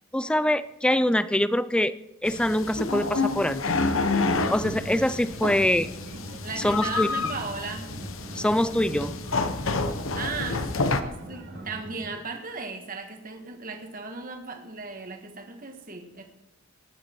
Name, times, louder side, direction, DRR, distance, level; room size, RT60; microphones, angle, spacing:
voice 1, 0.1-1.9 2.2-3.8 4.5-5.9 6.6-7.1 8.4-9.2, left 1 dB, 5° left, 15 dB, 0.4 m, -24 dB
sound 1, 2.2-11.0, left 3 dB, 70° left, 1.0 m, -29 dB
sound 2, 4.3-12.1, right 1 dB, 75° right, 4.1 m, -40 dB
voice 2, 4.8-5.2 6.4-7.9 10.2-16.2, right 4 dB, 40° right, 5 dB, 1.7 m, -36 dB
18.5 x 11.0 x 4.6 m, 0.90 s
head